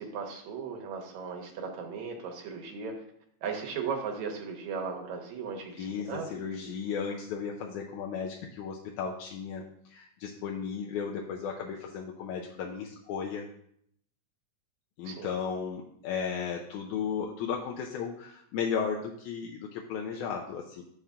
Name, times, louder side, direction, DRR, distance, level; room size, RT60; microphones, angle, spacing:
voice 1, 0.0-3.0 3.4-6.3 15.0-15.6, right 5 dB, 75° right, 2 dB, 2.2 m, -37 dB
voice 2, 5.8-9.6 9.9-13.4 15.0-20.8, left 6 dB, 85° left, 0 dB, 2.1 m, -35 dB
6.8 x 5.8 x 3.6 m, 0.70 s
omnidirectional pair, 3.4 m